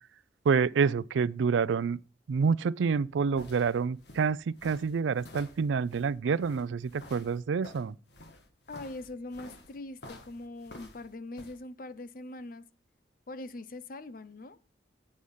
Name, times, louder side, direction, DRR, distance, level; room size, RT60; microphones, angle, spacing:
voice 1, 0.5-2.0 2.3-8.0, right 5 dB, 85° right, 0.4 m, -28 dB
sound 1, 2.9-11.6, left 1 dB, 65° left, 1.6 m, -51 dB
voice 2, 8.7-12.7 13.3-14.6, left 2 dB, 50° left, 0.6 m, -42 dB
8.6 x 6.4 x 5.4 m
head